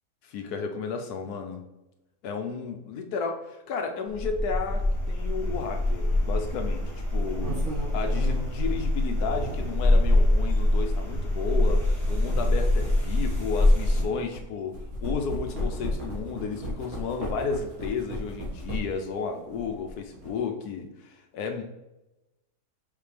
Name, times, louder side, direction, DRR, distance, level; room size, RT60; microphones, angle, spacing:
voice 1, 0.2-1.6 2.2-6.8 7.1-7.5 7.9-14.7 15.0-21.6, left 5 dB, 80° left, 5 dB, 1.3 m, -33 dB
sound 1, 4.1-14.0, left 1 dB, 50° right, 2.9 m, -24 dB
sound 2, 7.3-9.9 10.6-10.7 11.8-14.4 14.7-19.1 19.5-20.3, equal, 65° right, 2.3 m, -35 dB
5.8 x 5.4 x 3.4 m, 0.97 s
omnidirectional pair, 1.6 m